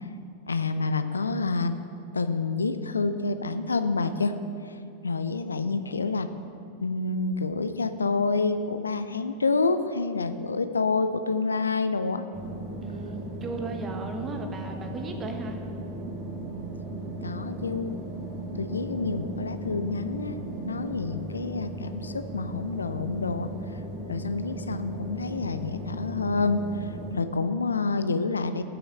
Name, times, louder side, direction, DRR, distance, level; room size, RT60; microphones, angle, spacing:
voice 1, 0.5-1.7 2.1-4.3 4.7-4.8 5.0-6.3 6.8-12.3 17.2-18.0 18.6-20.4 20.6-23.5 24.1-28.6, left 3 dB, 75° left, 10 dB, 0.4 m, -28 dB
sound 1, 12.3-27.1, right 1 dB, 45° right, 1.8 m, -37 dB
voice 2, 12.8-15.6, right 3 dB, 25° right, 4 dB, 1.1 m, -36 dB
7.8 x 6.2 x 7.7 m, 2.4 s
figure-of-eight pair, 90°, 0 cm